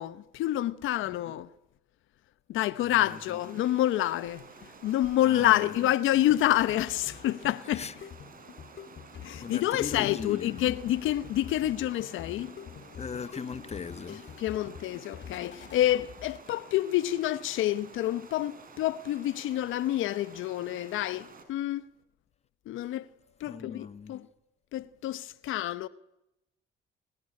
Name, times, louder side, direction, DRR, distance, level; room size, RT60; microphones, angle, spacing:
voice 1, 0.0-1.5 2.5-4.4 4.8-7.9 9.2-12.5 14.4-21.8 22.7-23.1 23.4-24.3 24.7-25.9, left 13 dB, 85° left, 1.0 m, -28 dB
voice 2, 2.8-3.4 5.2-5.7 7.7-7.9 9.4-10.6 13.0-14.3 23.4-24.2, left 5 dB, 30° left, 1.2 m, -39 dB
Stream, 3.0-21.4, right 4 dB, 45° right, 6.5 m, -52 dB
sound 1, 4.4-16.8, left 8 dB, 60° left, 2.6 m, -47 dB
28.0 x 18.5 x 9.9 m
cardioid pair, 90°, 20 cm